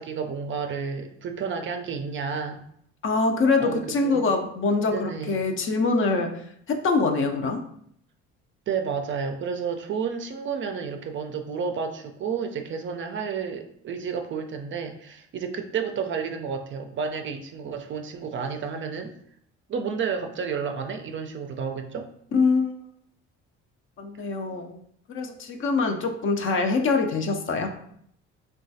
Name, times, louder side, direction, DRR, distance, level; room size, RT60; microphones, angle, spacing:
voice 1, 0.0-2.6 3.6-4.2 4.9-5.5 8.7-19.1 19.7-22.1 25.9-26.1, right 6 dB, 40° right, 5 dB, 0.4 m, -31 dB
voice 2, 3.0-6.4 6.7-7.6 22.3-22.8 24.0-24.8 25.1-27.7, left 4 dB, 45° left, 5 dB, 0.5 m, -24 dB
3.0 x 2.3 x 2.7 m, 0.69 s
supercardioid pair, 70°, 30 cm